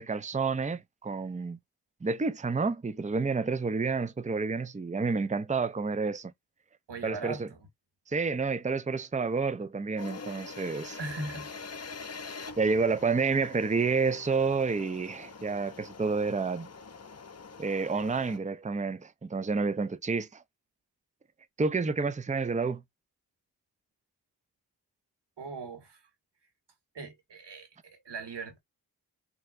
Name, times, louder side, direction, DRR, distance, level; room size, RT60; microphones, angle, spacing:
voice 1, 0.0-1.6 2.0-6.3 7.0-7.5 8.1-11.0 12.6-16.7 17.6-20.4 21.6-22.8, right 4 dB, 20° right, 0.6 m, -29 dB
voice 2, 6.9-7.6 11.0-11.5 12.4-12.6 25.4-26.1 26.9-28.6, right 3 dB, 90° right, 2.2 m, -40 dB
sound 1, 10.0-18.4, left 4 dB, 40° left, 0.9 m, -45 dB
5.7 x 3.0 x 2.6 m
cardioid pair, 55°, 40 cm